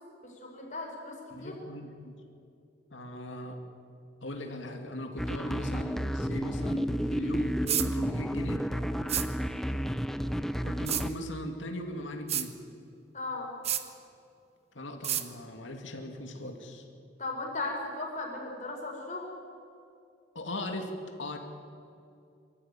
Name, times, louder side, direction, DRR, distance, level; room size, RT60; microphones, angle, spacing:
voice 1, 0.2-1.6 8.9-9.1 13.1-13.5 17.2-19.3, left 2 dB, 40° left, 0 dB, 4.6 m, -37 dB
voice 2, 1.3-2.2 2.9-3.6 4.2-8.7 10.6-12.5 14.7-16.8 20.3-20.9 21.2-21.4, left 1 dB, 90° left, 3 dB, 2.5 m, -39 dB
sound 1, 5.2-11.1, equal, ahead, 0.6 m, -31 dB
sound 2, 7.7-7.9 9.1-9.3 10.9-11.0 12.3-12.5 13.6-13.8 15.0-15.2, right 10 dB, 35° right, 1.0 m, -29 dB
24.0 x 14.0 x 9.1 m, 2.5 s
head